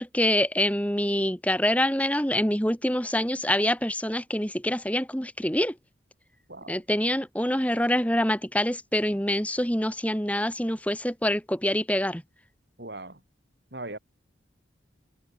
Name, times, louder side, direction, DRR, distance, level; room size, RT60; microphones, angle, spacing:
voice 1, 0.0-5.7 6.7-12.2, left 1 dB, 5° left, 4.2 m, -25 dB
voice 2, 6.5-6.8 12.8-13.2 13.7-14.0, right 2 dB, 60° right, 4.2 m, -39 dB
head